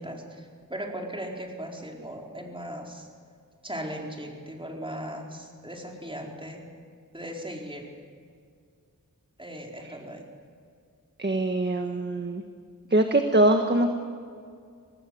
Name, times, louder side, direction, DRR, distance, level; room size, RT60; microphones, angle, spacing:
voice 1, 0.0-3.1 3.6-6.6 7.1-7.9 9.4-10.2, equal, 15° right, 0 dB, 4.4 m, -38 dB
voice 2, 11.2-12.4 12.9-13.9, right 1 dB, 30° right, 5 dB, 1.5 m, -23 dB
25.0 x 19.0 x 7.9 m, 2.2 s
wide cardioid pair, 65°, 34 cm